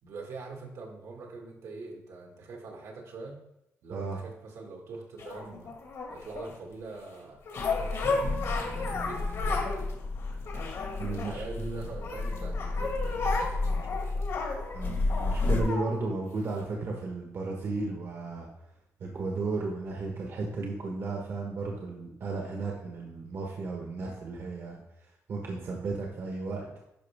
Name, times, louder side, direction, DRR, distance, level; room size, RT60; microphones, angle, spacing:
voice 1, 0.0-3.4 3.8-5.7 6.1-7.4 7.7-9.7 11.1-14.4, right 3 dB, 75° right, 0 dB, 1.9 m, -43 dB
sound 1, 5.2-6.6 7.5-9.8 10.2-11.6 12.0-15.9 16.6-16.7, left 3 dB, 65° left, 1.8 m, -34 dB
sound 2, 7.6-15.6, left 3 dB, 45° left, 1.2 m, -32 dB
voice 2, 11.0-11.8 14.7-18.5 19.0-24.8 25.3-26.8, right 3 dB, 55° right, 0 dB, 1.3 m, -34 dB
10.5 x 5.4 x 3.5 m, 0.85 s
cardioid pair, 125°, 5 cm